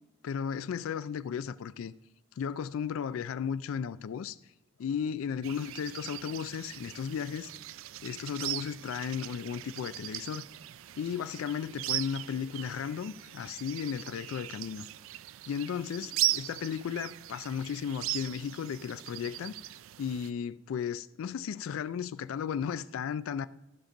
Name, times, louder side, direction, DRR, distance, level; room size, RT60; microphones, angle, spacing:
voice 1, 0.2-1.9 2.4-4.4 4.8-7.5 8.0-10.5 11.0-14.9 15.5-19.5 20.0-23.5, left 7 dB, 90° left, 0.3 m, -35 dB
sound 1, 5.4-20.3, right 15 dB, 80° right, 0.3 m, -39 dB
14.0 x 5.2 x 5.1 m
head